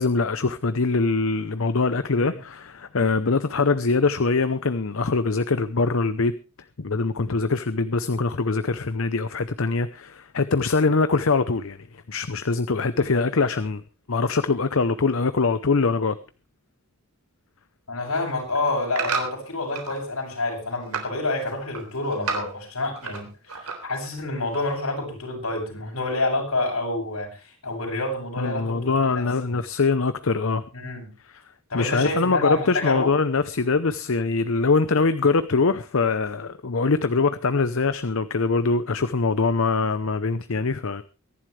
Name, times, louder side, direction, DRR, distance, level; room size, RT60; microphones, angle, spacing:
voice 1, 0.0-6.3 6.8-13.8 14.1-16.2 28.4-30.6 31.2-31.4 31.7-41.0, left 4 dB, 65° left, 0.7 m, -23 dB
voice 2, 17.9-29.2 30.7-31.1 31.7-33.1, left 2 dB, 80° left, 7.8 m, -28 dB
sound 1, 18.2-20.0 20.4-21.2 21.5-23.2 23.5-24.1 24.5-24.6, right 5 dB, 85° right, 3.8 m, -31 dB
23.5 x 11.0 x 3.3 m
head